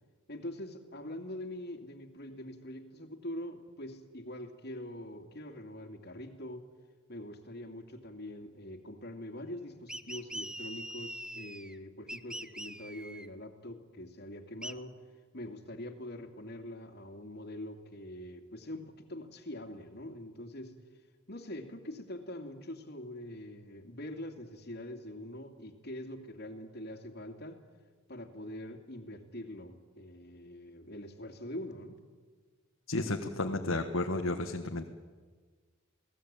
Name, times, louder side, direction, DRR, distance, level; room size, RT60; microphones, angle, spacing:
voice 1, 0.3-6.7 7.1-15.0 15.3-20.8 21.3-27.6 28.1-32.0, left 1 dB, 50° left, 6 dB, 2.6 m, -44 dB
sound 1, 9.9-11.8 12.1-13.3 14.6-14.7, right 1 dB, 5° right, 0.7 m, -42 dB
voice 2, 32.9-34.9, left 2 dB, 65° left, 2 dB, 1.6 m, -32 dB
28.5 x 18.5 x 8.9 m, 1.5 s
head